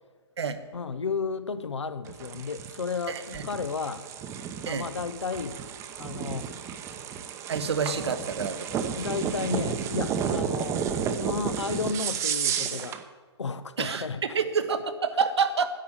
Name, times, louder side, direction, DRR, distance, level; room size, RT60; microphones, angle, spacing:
voice 1, 0.7-4.0 4.7-5.6 6.0-6.6 9.0-10.8 11.2-13.0 13.4-14.4, left 5 dB, 85° left, 0.8 m, -33 dB
sound 1, 2.1-13.0, right 7 dB, 20° right, 0.8 m, -32 dB
voice 2, 3.1-3.4 4.7-4.9 7.5-8.8 13.8-15.7, right 6 dB, 70° right, 1.1 m, -28 dB
10.5 x 7.0 x 8.8 m
hypercardioid pair, 130°, 15 cm